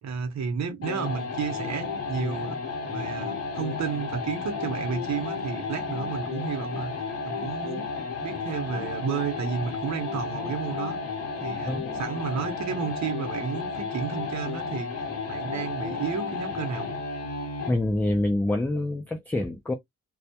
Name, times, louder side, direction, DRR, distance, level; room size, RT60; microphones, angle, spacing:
voice 1, 0.0-6.9 7.2-11.0 11.4-16.9, right 6 dB, 65° right, 0.8 m, -32 dB
sound 1, 0.8-17.8, left 4 dB, 55° left, 0.8 m, -33 dB
voice 2, 11.6-12.0 17.7-19.7, left 1 dB, 5° left, 0.3 m, -26 dB
2.2 x 2.1 x 2.7 m
wide cardioid pair, 145°, 30 cm